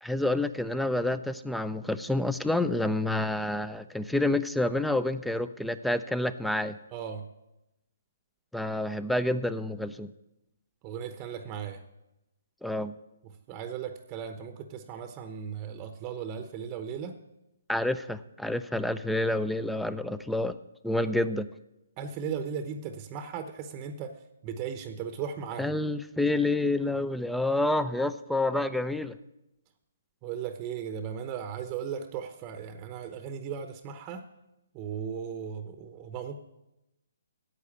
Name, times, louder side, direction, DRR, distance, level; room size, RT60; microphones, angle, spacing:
voice 1, 0.0-6.8 8.5-10.1 12.6-12.9 17.7-20.6 20.8-21.5 25.6-29.2, left 2 dB, ahead, 14 dB, 0.5 m, -28 dB
voice 2, 6.9-7.2 10.8-11.8 13.5-17.2 22.0-24.2 24.4-25.7 30.2-34.2 34.7-36.4, right 7 dB, 25° right, 8 dB, 0.9 m, -37 dB
10.5 x 8.2 x 8.5 m, 0.92 s
hypercardioid pair, 140°, 0 cm